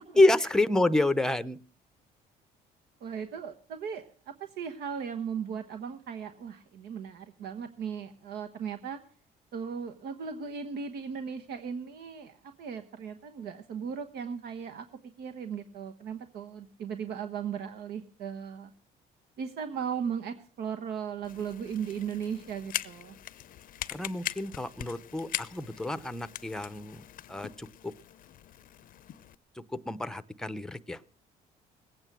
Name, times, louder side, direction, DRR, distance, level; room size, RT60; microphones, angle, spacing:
voice 1, 0.2-1.6 23.9-27.0 27.3-27.9 29.9-31.1, left 2 dB, 5° left, 14 dB, 0.7 m, -28 dB
voice 2, 3.0-9.0 9.5-14.8 15.2-18.7 19.4-23.1, right 7 dB, 75° right, 7 dB, 1.2 m, -37 dB
sound 1, 21.2-29.3, left 12 dB, 55° left, 0.6 m, -41 dB
20.5 x 8.9 x 6.1 m, 0.44 s
cardioid pair, 110°, 17 cm